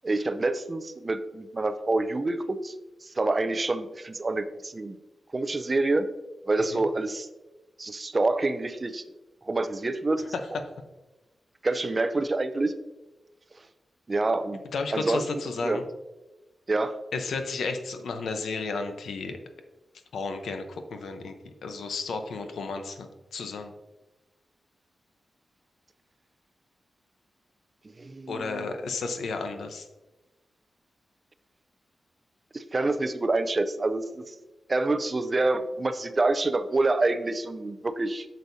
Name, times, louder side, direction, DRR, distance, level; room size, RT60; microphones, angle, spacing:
voice 1, 0.0-2.7 3.0-5.0 5.3-6.1 6.5-7.3 7.8-9.0 9.5-10.3 11.6-12.7 14.1-14.6 14.9-15.2 15.6-15.8 16.7-17.0 28.0-28.7 32.5-34.3 34.7-38.3, right 2 dB, 25° right, 11 dB, 0.4 m, -27 dB
voice 2, 14.7-15.8 17.1-19.4 20.1-23.7 28.3-29.9, left 4 dB, 90° left, 7 dB, 0.8 m, -33 dB
8.2 x 6.4 x 2.7 m, 1.1 s
wide cardioid pair, 155°, 0 cm